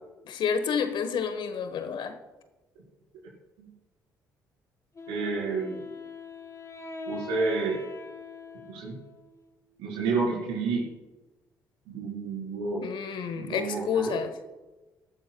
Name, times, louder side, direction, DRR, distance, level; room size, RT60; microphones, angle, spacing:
voice 1, 0.2-2.2 12.8-14.3, left 6 dB, 60° left, 9 dB, 1.3 m, -29 dB
Wind instrument woodwind instrument, 4.9-9.7, left 4 dB, 35° left, 3.4 m, -42 dB
voice 2, 5.1-5.8 7.1-7.8 8.7-9.0 9.8-10.9 11.9-12.8 13.3-14.1, right 4 dB, 75° right, -2 dB, 4.5 m, -30 dB
18.0 x 12.5 x 2.3 m, 1.1 s
hypercardioid pair, 45°, 9 cm